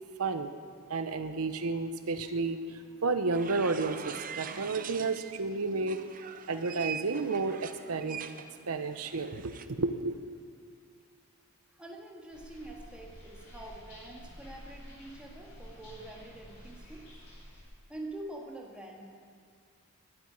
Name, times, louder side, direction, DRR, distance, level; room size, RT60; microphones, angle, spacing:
voice 1, 0.2-0.5 0.9-6.0 6.5-8.2 8.6-10.2, right 3 dB, 80° right, 9 dB, 0.8 m, -31 dB
sound 1, 3.3-5.4 5.8-9.7, right 7 dB, 35° right, 0.6 m, -43 dB
voice 2, 11.7-17.1 17.9-19.0, right 1 dB, 5° right, -2 dB, 1.8 m, -45 dB
sound 2, 12.3-17.6, equal, 55° left, 4.7 m, -50 dB
12.0 x 9.5 x 9.8 m, 2.2 s
head